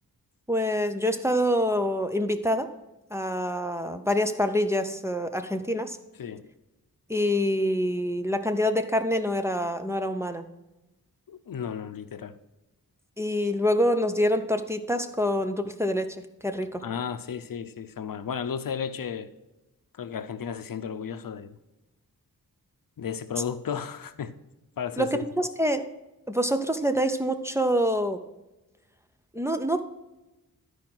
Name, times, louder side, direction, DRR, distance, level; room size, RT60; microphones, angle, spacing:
voice 1, 0.5-2.7 3.1-6.0 7.1-10.5 13.2-16.2 16.4-16.8 25.0-25.9 26.3-28.2 29.3-29.8, equal, 10° right, 5 dB, 0.6 m, -26 dB
voice 2, 11.3-12.4 16.8-19.3 20.0-21.6 23.0-24.3 24.8-25.2, left 7 dB, 70° left, 11 dB, 0.7 m, -34 dB
12.0 x 4.9 x 6.0 m, 1.0 s
wide cardioid pair, 115°, 36 cm